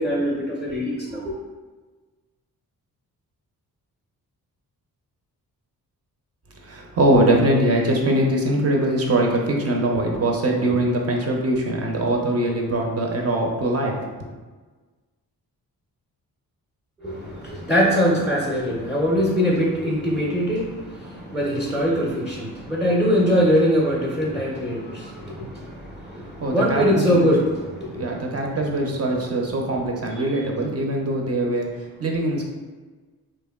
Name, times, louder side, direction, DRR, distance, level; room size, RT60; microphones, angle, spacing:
voice 1, 0.0-1.3 17.0-28.5, equal, ahead, -4 dB, 0.6 m, -22 dB
voice 2, 6.6-13.9 26.4-27.3 27.9-31.7 32.0-32.5, right 1 dB, 40° right, 0 dB, 0.6 m, -22 dB
3.1 x 2.2 x 2.2 m, 1.3 s
cardioid pair, 75°, 37 cm